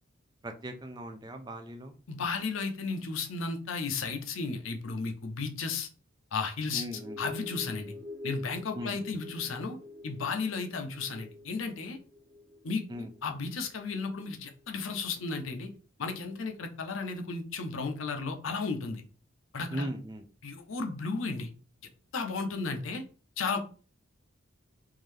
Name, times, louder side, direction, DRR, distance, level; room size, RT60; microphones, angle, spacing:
voice 1, 0.4-1.9 6.7-7.2 8.7-9.0 12.9-13.1 19.7-20.2, right 1 dB, 20° right, 5 dB, 0.4 m, -38 dB
voice 2, 2.1-5.9 6.3-6.9 7.2-7.9 8.2-9.8 10.0-12.0 12.6-15.7 16.0-19.0 19.5-19.9 20.4-21.5 22.1-23.0 23.4-23.6, left 4 dB, 75° left, 5 dB, 0.6 m, -34 dB
sound 1, 6.9-14.6, left 2 dB, 45° right, 1.4 m, -46 dB
3.7 x 2.7 x 3.2 m, 0.38 s
head